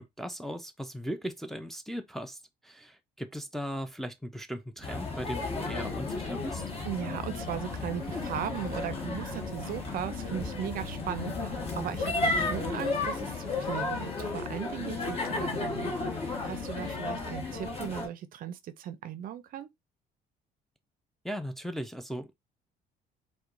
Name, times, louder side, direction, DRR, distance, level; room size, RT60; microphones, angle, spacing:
voice 1, 0.0-2.4 2.6-6.6 21.2-22.5, equal, ahead, 0.4 m, -38 dB
sound 1, 4.8-18.1, left 3 dB, 35° left, 1.2 m, -34 dB
sound 2, 4.8-12.7, right 4 dB, 20° right, 1.0 m, -44 dB
sound 3, 5.1-17.7, left 15 dB, 80° left, 0.5 m, -45 dB
voice 2, 6.9-19.7, right 10 dB, 55° right, 0.4 m, -37 dB
4.4 x 2.2 x 2.5 m
cardioid pair, 110°, 17 cm